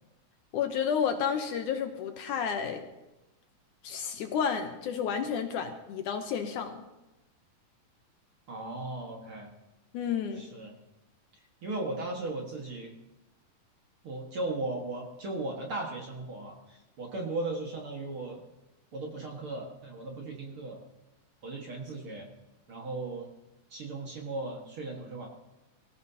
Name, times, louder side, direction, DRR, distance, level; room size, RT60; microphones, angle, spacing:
voice 1, 0.5-2.8 3.8-6.8 9.9-10.4, left 7 dB, 70° left, 5 dB, 2.1 m, -31 dB
voice 2, 8.5-9.5 10.3-10.7 11.6-12.9 14.0-18.4 18.9-20.8 21.4-22.3 22.7-23.3 23.7-25.3, right 2 dB, 45° right, 0 dB, 2.1 m, -37 dB
23.5 x 15.0 x 2.9 m, 1.0 s
omnidirectional pair, 4.1 m